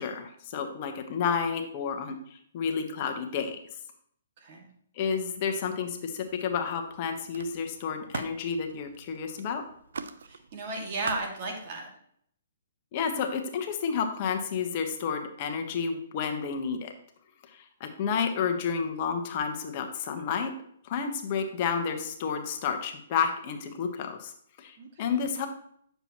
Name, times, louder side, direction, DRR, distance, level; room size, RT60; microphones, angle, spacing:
voice 1, 0.0-3.6 5.0-9.6 12.9-16.9 17.5-20.5 20.8-24.3 24.6-25.5, left 6 dB, 40° left, 5 dB, 1.2 m, -31 dB
Camera, 5.4-6.0 6.3-11.8, right 5 dB, 80° right, 0.6 m, -44 dB
voice 2, 10.3-11.9 24.8-25.3, right 2 dB, 45° right, 1 dB, 2.1 m, -35 dB
8.8 x 6.9 x 3.0 m, 0.66 s
hypercardioid pair, 150°, 0 cm